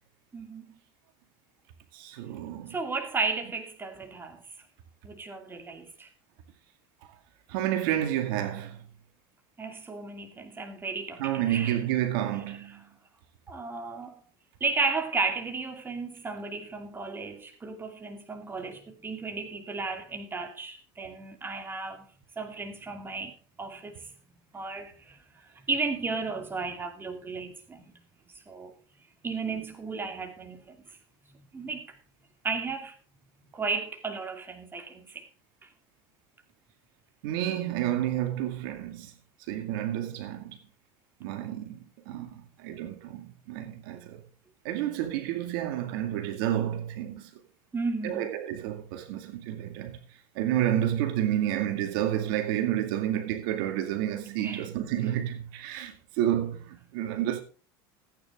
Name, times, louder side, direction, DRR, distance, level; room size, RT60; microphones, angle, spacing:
voice 1, 0.3-0.8 2.7-4.4 5.0-6.1 9.6-11.8 13.5-14.2 14.6-22.1 22.4-23.3 23.6-24.1 24.5-25.2 25.7-28.0 28.5-28.7 29.2-30.8 31.5-32.0 32.4-32.9 33.5-35.3 35.6-35.7 47.7-48.3 54.4-54.6, right 4 dB, 20° right, 2.6 m, -34 dB
voice 2, 1.9-2.8 7.5-8.8 11.2-12.9 37.2-39.1 39.5-40.6 41.2-44.2 44.6-47.4 48.0-50.0 50.4-57.4, right 12 dB, 75° right, 2.1 m, -30 dB
15.0 x 9.4 x 3.7 m
supercardioid pair, 105°, 12 cm